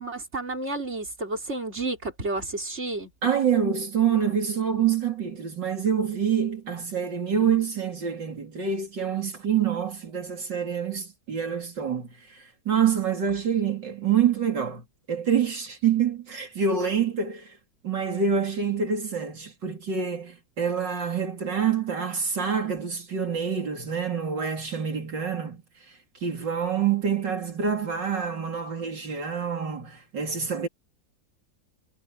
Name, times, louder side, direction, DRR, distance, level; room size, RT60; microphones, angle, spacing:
voice 1, 0.0-3.1, right 2 dB, 35° right, 4.9 m, -31 dB
voice 2, 3.2-17.6 17.8-25.6 26.2-30.7, right 7 dB, 75° right, 3.7 m, -26 dB
omnidirectional pair, 1.9 m